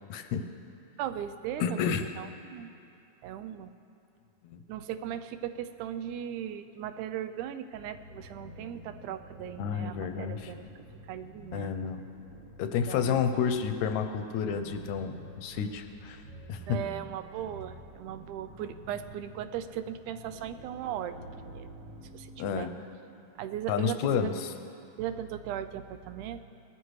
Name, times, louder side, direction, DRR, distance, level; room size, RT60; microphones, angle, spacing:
voice 1, 0.1-0.4 1.6-2.1 4.4-4.6 9.6-10.5 11.5-12.0 12.6-16.2 16.5-16.8 22.4-22.7 23.7-24.5, left 7 dB, 80° left, 7 dB, 1.8 m, -30 dB
voice 2, 1.0-2.7 3.2-3.7 4.7-10.7 11.1-11.7 12.1-12.2 12.9-13.2 16.7-21.2 21.5-21.7 22.1-22.7 23.4-24.3 25.0-26.5, right 10 dB, 90° right, 10 dB, 2.0 m, -38 dB
sound 1, 7.7-22.5, right 1 dB, 60° right, 1.9 m, -49 dB
19.5 x 13.0 x 3.2 m, 2.6 s
omnidirectional pair, 3.4 m